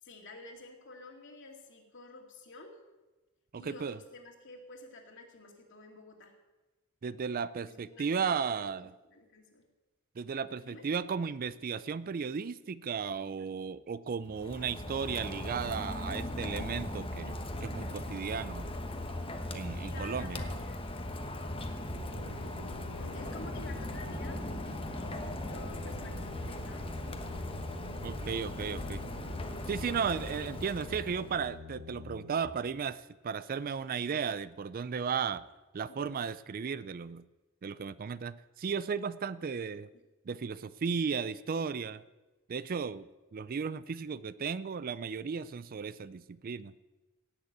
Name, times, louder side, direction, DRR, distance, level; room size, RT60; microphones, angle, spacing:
voice 1, 0.0-2.8 3.5-6.3 7.6-8.8 9.1-9.6 10.6-10.8 19.6-20.8 22.1-22.6 23.0-26.9 35.9-36.1, left 2 dB, 60° left, 2 dB, 2.3 m, -51 dB
voice 2, 3.5-4.0 7.0-8.9 10.2-18.7 19.5-20.4 28.0-29.0 29.7-35.4 35.7-37.3 37.6-39.9 40.3-42.0 42.5-46.7, right 6 dB, 40° right, 16 dB, 0.4 m, -35 dB
Rain, 14.2-31.5, left 1 dB, 25° left, 1.1 m, -39 dB
sound 1, 22.0-32.5, left 3 dB, 70° right, 1.1 m, -47 dB
17.5 x 6.6 x 8.1 m, 1.2 s
head